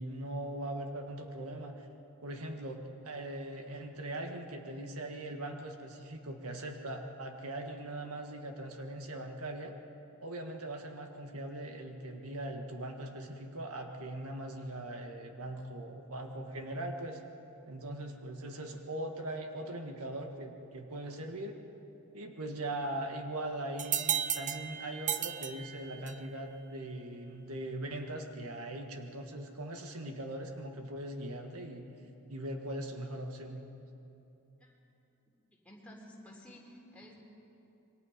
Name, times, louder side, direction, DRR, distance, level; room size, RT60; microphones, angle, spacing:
voice 1, 0.0-1.9 2.2-9.7 10.2-17.2 17.7-21.6 22.1-31.9 32.3-33.6, right 1 dB, 80° right, 3 dB, 1.7 m, -40 dB
sound 1, 23.8-26.4, right 9 dB, 35° right, 0.7 m, -35 dB
voice 2, 35.6-37.1, left 1 dB, 5° left, -3 dB, 3.6 m, -52 dB
27.5 x 22.5 x 5.2 m, 2.9 s
head